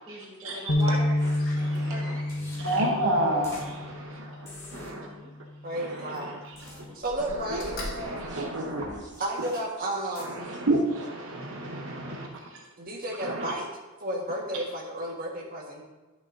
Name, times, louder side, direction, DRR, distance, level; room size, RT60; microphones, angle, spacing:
voice 1, 0.1-2.2 4.7-5.3 6.8-7.0 8.3-8.4 9.0-9.3, equal, 20° right, -4 dB, 1.6 m, -41 dB
sound 1, 0.7-4.9 5.4-5.7 6.5-6.9, left 1 dB, 60° left, 1.0 m, -29 dB
Slam, 0.7-4.5 5.6-6.6 6.9-9.2 9.7-9.8, left 1 dB, 45° left, 2.9 m, -45 dB
sound 2, 1.2-1.4 2.3-2.8 3.4-3.7 4.5-4.9 6.5-6.8 7.9-8.2 8.8-9.6 10.1-10.2, left 1 dB, 15° left, 2.7 m, -44 dB
voice 2, 1.6-2.2 2.6-5.1 5.7-6.5 7.3-8.9 9.4-9.5 10.2-12.6 13.2-13.5, right 1 dB, 60° right, 0 dB, 0.9 m, -31 dB
voice 3, 2.8-3.7 5.6-6.3 6.9-7.6 9.2-10.4 12.8-13.7 14.0-15.8, right 1 dB, 40° right, -1 dB, 1.5 m, -32 dB
11.5 x 6.7 x 2.6 m, 1.2 s
head